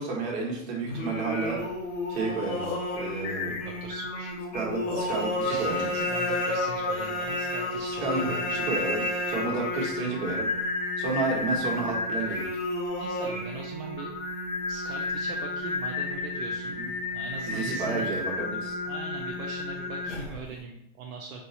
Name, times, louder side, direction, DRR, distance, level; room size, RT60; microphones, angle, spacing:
voice 1, 0.0-1.6 2.1-2.6 2.9-3.6 4.5-5.8 8.0-8.3 8.7-10.5 11.0-12.4 16.8-16.9 17.5-18.7, right 4 dB, 50° right, -2 dB, 1.3 m, -31 dB
Singing, 0.9-20.5, left 2 dB, 25° left, 0.5 m, -31 dB
voice 2, 3.6-4.3 5.4-8.7 9.1-9.3 13.0-14.1 14.7-16.8 17.1-18.2 18.8-21.4, right 4 dB, 80° right, -1 dB, 0.7 m, -41 dB
Drum, 8.3-12.0, left 1 dB, 25° right, 0.6 m, -47 dB
4.5 x 2.1 x 2.7 m, 0.76 s
supercardioid pair, 150°, 41 cm